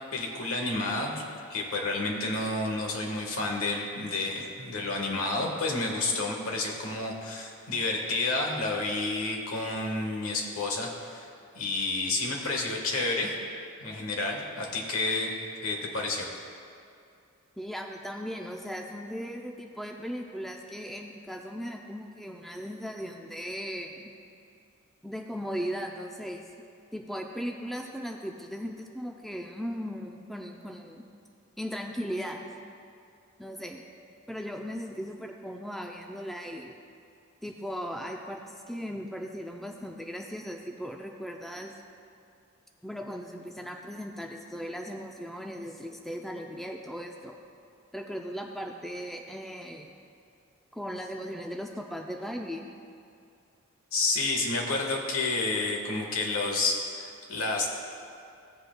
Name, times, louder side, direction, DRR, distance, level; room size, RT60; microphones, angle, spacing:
voice 1, 0.1-1.2 1.5-11.3 11.5-13.3 13.8-15.3 15.6-16.3 53.9-57.7, left 2 dB, 80° left, 0 dB, 1.4 m, -30 dB
voice 2, 17.6-24.1 25.0-26.5 26.9-31.0 31.6-32.6 33.4-33.9 34.3-36.7 37.4-41.7 42.8-47.4 47.9-49.9 50.7-52.7, equal, ahead, 1 dB, 0.4 m, -37 dB
16.0 x 7.8 x 2.2 m, 2.5 s
head